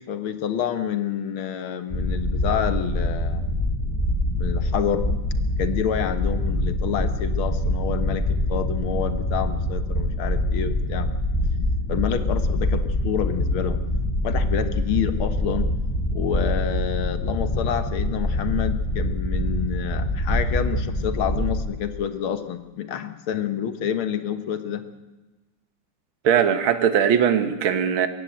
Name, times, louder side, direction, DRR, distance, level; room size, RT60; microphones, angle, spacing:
voice 1, 0.0-3.5 4.3-5.0 5.6-11.1 11.9-13.8 14.2-15.7 16.1-24.8, left 9 dB, 80° left, 10 dB, 2.0 m, -28 dB
sound 1, 1.9-21.6, left 1 dB, 20° left, 6.6 m, -25 dB
voice 2, 26.2-28.1, right 8 dB, 75° right, 9 dB, 2.1 m, -20 dB
22.0 x 16.0 x 8.9 m, 1.1 s
omnidirectional pair, 2.3 m